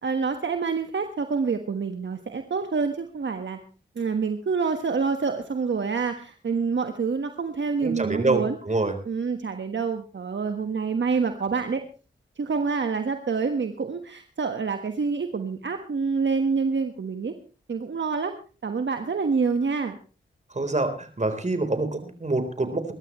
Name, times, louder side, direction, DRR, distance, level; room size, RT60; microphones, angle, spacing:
voice 1, 0.0-3.6 3.9-8.6 9.0-11.8 12.4-17.3 17.7-18.4 18.6-20.0, right 5 dB, 65° right, 6 dB, 1.4 m, -27 dB
voice 2, 7.8-8.9 20.5-22.9, right 2 dB, 35° right, 8 dB, 3.9 m, -26 dB
22.5 x 12.5 x 3.1 m, 0.35 s
cardioid pair, 40°, 21 cm